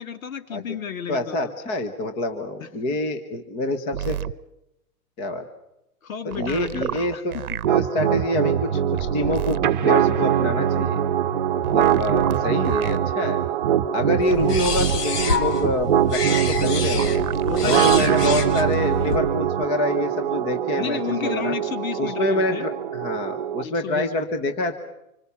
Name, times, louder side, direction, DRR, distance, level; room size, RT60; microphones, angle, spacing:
voice 1, 0.0-1.5 2.6-3.0 6.0-7.6 17.4-18.2 20.8-22.7 23.6-24.3, left 8 dB, 60° left, 10 dB, 2.6 m, -32 dB
voice 2, 1.1-4.2 5.2-5.5 6.2-7.4 7.7-11.0 11.5-13.4 13.9-17.2 17.6-21.5 22.0-24.8, left 1 dB, 15° left, 7 dB, 1.0 m, -26 dB
sound 1, 3.9-4.3 6.3-7.7 9.0-9.7 11.6-13.0 14.3-15.0 17.0-18.3 19.6-19.7, right 10 dB, 70° right, 1.1 m, -31 dB
sound 2, 7.6-23.6, right 9 dB, 35° right, 1.1 m, -23 dB
sound 3, 14.2-19.2, left 5 dB, 90° left, 3.3 m, -28 dB
26.0 x 25.0 x 7.0 m, 0.84 s
hypercardioid pair, 170°, 45 cm